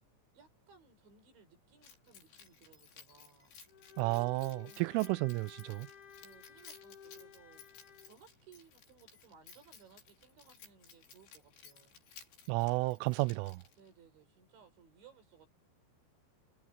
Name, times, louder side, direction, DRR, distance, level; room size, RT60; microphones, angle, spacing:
voice 1, 0.3-3.5 4.6-5.0 6.2-12.0 13.8-15.5, right 6 dB, 70° right, 7.9 m, -62 dB
Keys jangling, 1.8-14.0, left 6 dB, 65° left, 7.1 m, -58 dB
Bowed string instrument, 3.7-8.2, left 7 dB, 40° left, 2.2 m, -55 dB
voice 2, 4.0-5.9 12.5-13.6, right 24 dB, 90° right, 3.1 m, -32 dB
omnidirectional pair, 5.6 m